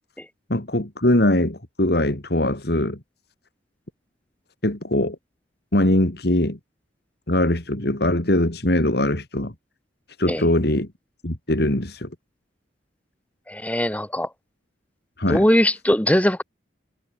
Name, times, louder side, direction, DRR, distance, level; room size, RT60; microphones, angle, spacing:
voice 1, 0.5-3.0 4.6-5.2 5.7-6.6 7.3-9.5 10.2-10.9 11.2-12.1 15.2-15.4, left 1 dB, 60° left, 2.8 m, -21 dB
voice 2, 13.5-14.3 15.3-16.4, left 1 dB, 10° left, 1.5 m, -20 dB
head